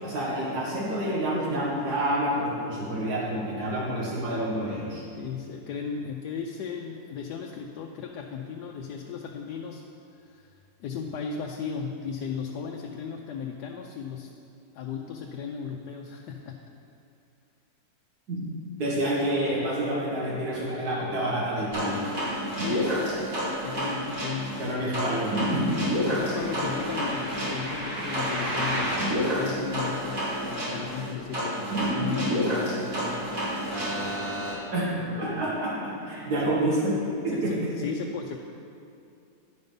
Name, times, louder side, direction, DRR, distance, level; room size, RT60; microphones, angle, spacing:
voice 1, 0.0-5.0 18.3-18.4 18.8-22.0 24.6-25.7 34.7-37.7, right 1 dB, 75° right, -5 dB, 1.8 m, -28 dB
voice 2, 5.2-9.8 10.2-10.5 10.8-14.3 14.7-16.6 22.6-23.3 23.6-24.8 26.1-33.3 34.9-35.5 36.2-36.3 37.3-38.4, left 6 dB, 90° left, 1 dB, 1.2 m, -36 dB
sound 1, 21.7-34.5, equal, 55° right, 2.8 m, -29 dB
10.5 x 5.4 x 5.3 m, 2.5 s
omnidirectional pair, 1.7 m